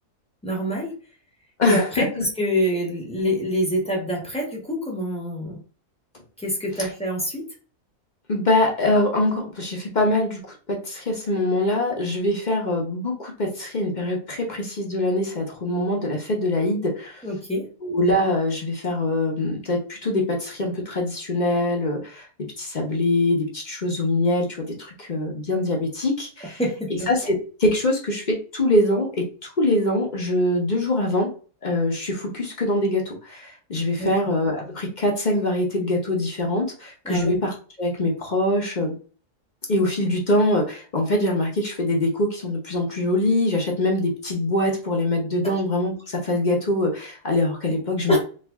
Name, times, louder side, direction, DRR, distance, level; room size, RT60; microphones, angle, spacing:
voice 1, 0.4-0.9 1.6-5.6 6.4-7.5 17.2-17.7 26.6-27.3 34.0-34.1 37.0-37.4 45.4-45.5 48.1-48.2, equal, 5° left, -2 dB, 1.1 m, -26 dB
voice 2, 1.6-2.2 6.8-6.9 8.3-10.4 10.7-17.2 17.8-22.3 22.6-26.6 27.1-31.3 31.6-38.9 39.7-48.2, left 1 dB, 40° left, 0 dB, 0.8 m, -23 dB
3.3 x 2.5 x 3.4 m, 0.38 s
omnidirectional pair, 1.5 m